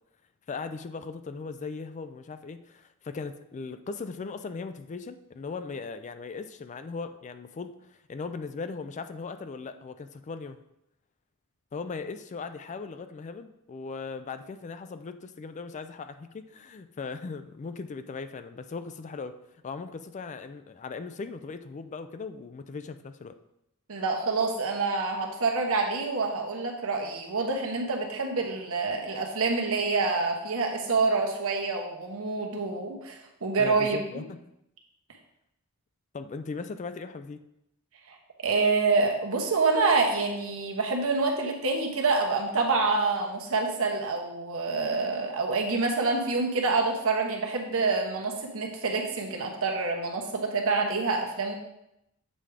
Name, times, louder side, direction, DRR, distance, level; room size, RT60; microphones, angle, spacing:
voice 1, 0.5-10.6 11.7-19.4 19.6-23.4 33.6-34.4 36.1-37.4, left 4 dB, 35° left, 10 dB, 0.3 m, -38 dB
voice 2, 23.9-34.0 38.1-38.2 38.4-51.5, right 3 dB, 70° right, 1 dB, 1.1 m, -27 dB
7.5 x 3.5 x 4.9 m, 0.84 s
head